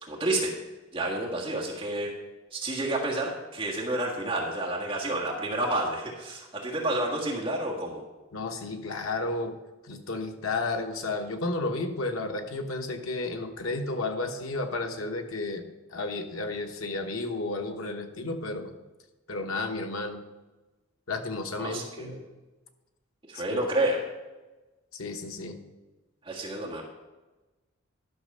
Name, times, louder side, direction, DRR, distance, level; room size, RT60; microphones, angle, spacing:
voice 1, 0.1-0.5 0.9-2.1 2.5-8.0 21.6-22.2 23.3-24.0 26.2-26.8, right 1 dB, 25° right, -3 dB, 1.6 m, -30 dB
voice 2, 8.3-9.6 9.8-15.6 15.9-18.7 19.3-20.2 21.1-22.2 23.3-23.6 24.9-25.6, left 2 dB, 85° left, 4 dB, 1.2 m, -32 dB
12.0 x 6.0 x 5.5 m, 1.2 s
head